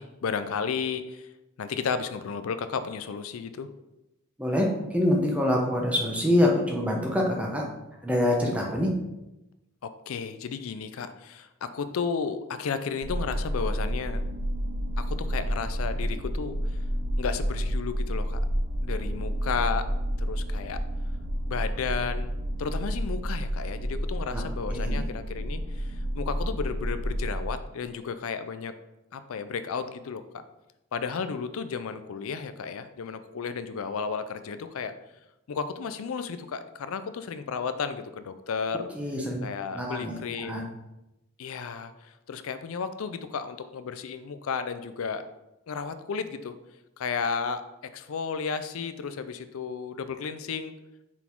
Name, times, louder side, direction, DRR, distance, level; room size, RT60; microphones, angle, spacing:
voice 1, 0.0-1.3 1.6-3.7 9.8-14.3 15.0-16.8 17.2-18.4 18.8-19.9 20.2-20.8 21.5-22.3 22.6-28.7 29.1-30.2 30.9-34.9 35.5-38.9 39.4-40.6 41.4-45.2 45.7-46.5 47.0-47.6 47.9-50.7, left 5 dB, 75° left, 11 dB, 0.4 m, -33 dB
voice 2, 4.4-7.6 8.0-8.9 24.3-24.4 24.7-25.0 39.0-39.4 39.7-40.1 40.4-40.6, left 1 dB, 5° right, -1 dB, 0.8 m, -25 dB
sound 1, 13.0-27.5, equal, 40° right, 0.6 m, -30 dB
5.8 x 4.0 x 4.5 m, 0.94 s
head